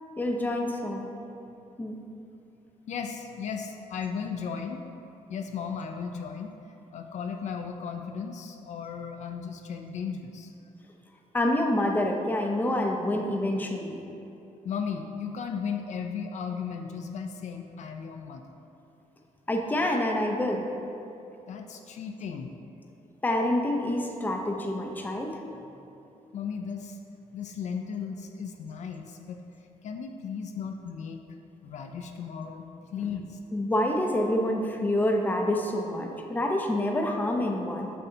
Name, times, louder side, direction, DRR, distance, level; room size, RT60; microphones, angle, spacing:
voice 1, 0.2-1.1 1.8-2.0 11.3-14.0 19.5-20.7 23.2-25.4 33.5-37.9, left 1 dB, 15° left, 2 dB, 0.6 m, -27 dB
voice 2, 2.9-4.8 5.3-10.5 14.6-18.4 21.5-22.5 26.3-27.0 27.3-29.4 29.8-31.3 31.6-33.4, left 6 dB, 60° left, 5 dB, 0.4 m, -36 dB
7.5 x 5.5 x 2.7 m, 2.8 s
cardioid pair, 125°, 13 cm